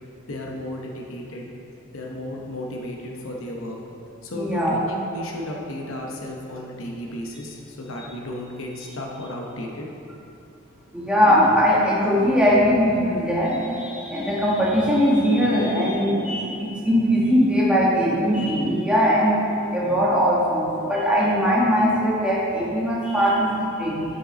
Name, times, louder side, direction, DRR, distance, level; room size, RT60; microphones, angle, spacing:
voice 1, 0.3-1.5 1.9-3.8 4.2-9.9, left 1 dB, 65° left, -1 dB, 0.9 m, -33 dB
voice 2, 4.3-4.8 10.9-19.4 19.7-24.0, equal, 5° right, -6 dB, 1.5 m, -20 dB
10.0 x 5.4 x 4.1 m, 2.8 s
head